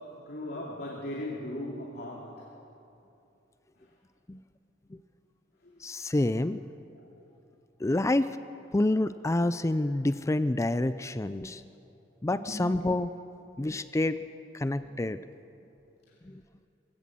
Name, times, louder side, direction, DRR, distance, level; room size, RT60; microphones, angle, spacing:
voice 1, 0.0-2.6 3.8-3.9 5.6-5.8 6.9-7.1 12.3-12.7 14.8-14.9, left 1 dB, 60° left, -2 dB, 2.5 m, -39 dB
voice 2, 5.8-6.6 7.8-8.3 8.7-11.6 12.2-13.1 13.6-14.2 14.5-15.2 16.2-16.3, left 1 dB, 15° left, 13 dB, 0.4 m, -27 dB
22.5 x 16.5 x 7.6 m, 2.8 s
head